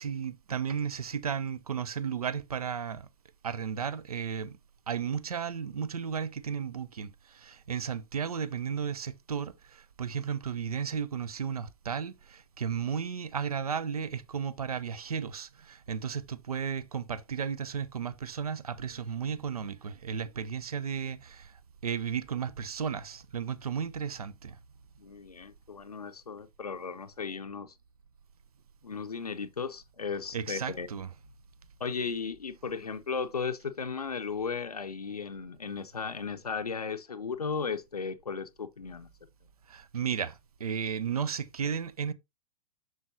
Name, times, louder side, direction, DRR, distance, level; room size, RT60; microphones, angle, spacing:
voice 1, 0.0-3.1 3.4-4.6 4.9-24.6 30.3-31.1 39.7-42.1, right 7 dB, 75° right, 0.6 m, -34 dB
voice 2, 25.0-27.7 28.8-30.9 31.8-39.1, left 5 dB, 85° left, 0.5 m, -35 dB
7.0 x 6.3 x 2.6 m
figure-of-eight pair, 105°, 19 cm